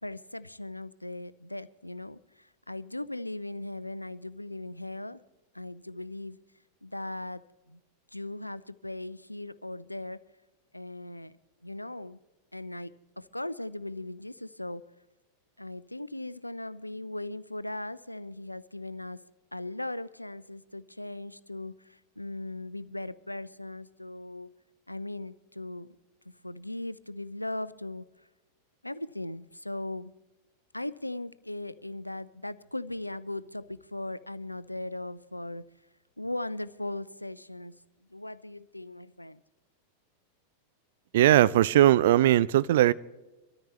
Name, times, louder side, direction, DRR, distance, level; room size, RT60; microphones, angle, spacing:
voice 1, 0.0-5.2 5.5-6.4 6.8-7.8 8.1-10.2 10.7-11.4 11.6-12.2 12.5-14.8 15.6-19.2 19.5-24.5 24.9-26.0 26.3-28.1 28.8-30.1 30.7-35.7 36.2-37.8 38.1-39.4, left 2 dB, 85° left, 0.4 m, -38 dB
voice 2, 41.1-42.9, right 13 dB, 55° right, 0.4 m, -20 dB
24.0 x 13.5 x 3.2 m
figure-of-eight pair, 90°, 0 cm